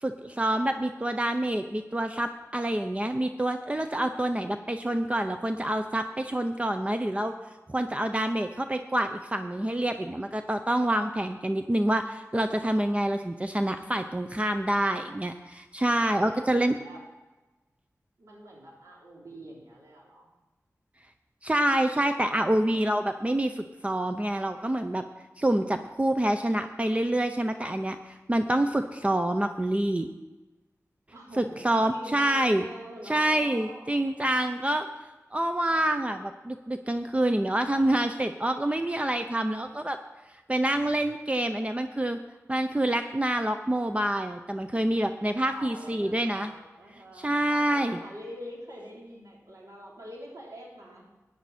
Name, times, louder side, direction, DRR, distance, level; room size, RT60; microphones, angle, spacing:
voice 1, 0.0-7.3 7.7-16.8 21.4-25.0 25.4-30.1 31.4-32.6 33.1-34.9 35.3-40.0 40.5-42.2 42.5-46.5 47.2-48.0, right 1 dB, 25° right, 7 dB, 0.6 m, -27 dB
voice 2, 16.1-17.0 18.2-20.3 31.1-34.0 45.5-51.0, equal, 75° right, -3 dB, 3.6 m, -45 dB
14.0 x 9.5 x 4.3 m, 1.1 s
wide cardioid pair, 60°, 6 cm